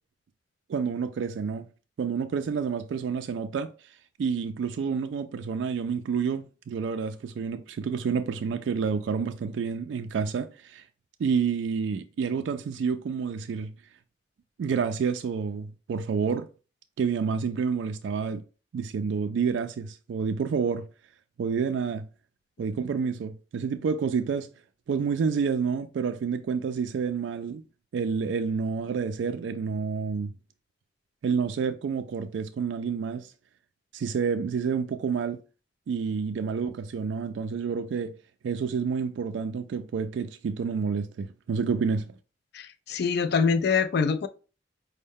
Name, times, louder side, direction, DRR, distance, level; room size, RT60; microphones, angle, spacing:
voice 1, 0.7-1.7 2.0-3.7 4.2-10.8 11.2-13.7 14.6-16.5 17.0-18.4 18.7-20.9 21.4-22.1 22.6-24.5 24.9-27.6 27.9-30.3 31.2-33.3 33.9-35.4 35.9-38.1 38.4-42.1, right 6 dB, 70° right, 0.3 m, -29 dB
voice 2, 42.5-44.3, left 5 dB, 60° left, 0.4 m, -24 dB
5.2 x 2.1 x 3.5 m
head